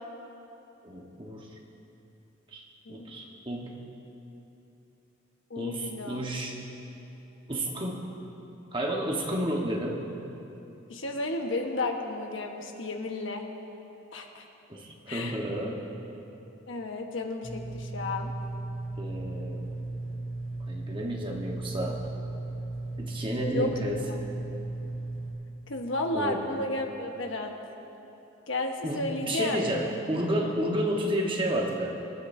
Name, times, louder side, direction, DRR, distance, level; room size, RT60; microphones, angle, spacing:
voice 1, 0.8-1.5 2.5-2.6 2.9-3.8 5.5-6.6 7.5-8.1 8.7-10.1 14.7-15.9 19.0-19.7 20.7-22.0 23.0-24.0 26.1-26.4 28.8-32.1, right 1 dB, 25° right, 0 dB, 1.3 m, -31 dB
voice 2, 5.5-6.2 10.9-13.4 14.1-14.4 15.1-15.4 16.7-18.3 23.5-23.7 25.7-27.6 28.5-29.6, left 2 dB, 70° left, 2 dB, 1.3 m, -32 dB
sound 1, 17.4-25.3, right 2 dB, 45° left, 3.7 m, -36 dB
25.5 x 12.0 x 2.7 m, 3.0 s
head